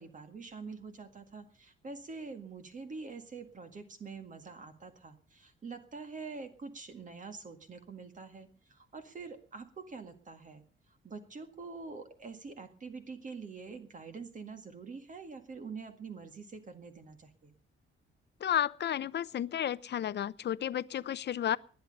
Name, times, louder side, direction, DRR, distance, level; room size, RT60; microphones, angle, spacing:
voice 1, 0.0-17.5, right 4 dB, 40° right, 2.0 m, -46 dB
voice 2, 18.4-21.6, left 10 dB, 55° left, 0.7 m, -32 dB
20.0 x 11.0 x 5.4 m
wide cardioid pair, 140°, 21 cm